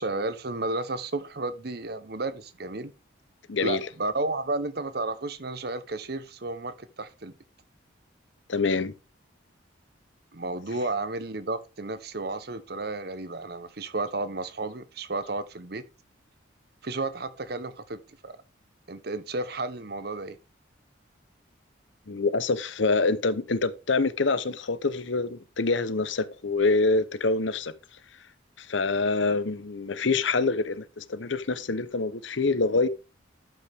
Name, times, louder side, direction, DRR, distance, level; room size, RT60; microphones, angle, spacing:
voice 1, 0.0-2.9 3.6-7.3 10.3-15.8 16.8-18.4 18.9-20.4, right 2 dB, 55° right, 0.9 m, -32 dB
voice 2, 3.5-3.8 8.5-8.9 22.1-27.7 28.6-32.9, left 3 dB, 75° left, 0.8 m, -26 dB
12.0 x 5.7 x 3.5 m
head